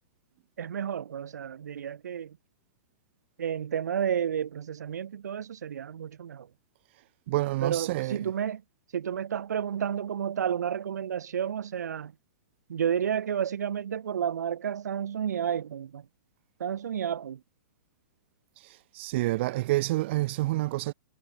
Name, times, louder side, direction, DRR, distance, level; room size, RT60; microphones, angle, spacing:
voice 1, 0.6-2.4 3.4-6.5 7.6-8.6 8.9-12.1 12.7-16.1 16.6-17.4, right 8 dB, 80° right, 7.7 m, -31 dB
voice 2, 7.3-8.2 18.9-20.9, right 18 dB, 45° right, 3.7 m, -28 dB
hypercardioid pair, 165°, 9 cm